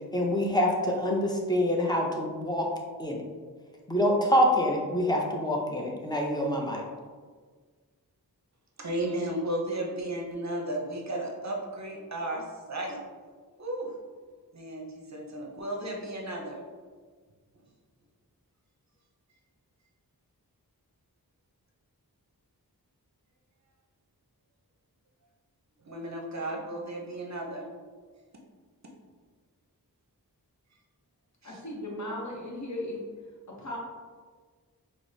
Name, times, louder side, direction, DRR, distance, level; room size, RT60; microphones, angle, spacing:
voice 1, 0.1-2.7 3.0-3.2 3.9-6.8, equal, 10° left, -1 dB, 0.5 m, -26 dB
voice 2, 8.8-13.0 13.6-13.9 14.5-16.6 25.8-27.7 31.4-31.6, right 1 dB, 45° right, 0 dB, 0.6 m, -34 dB
voice 3, 31.4-33.0 33.5-33.8, left 1 dB, 50° left, -2 dB, 0.8 m, -36 dB
4.6 x 2.0 x 2.6 m, 1.5 s
wide cardioid pair, 50°, 38 cm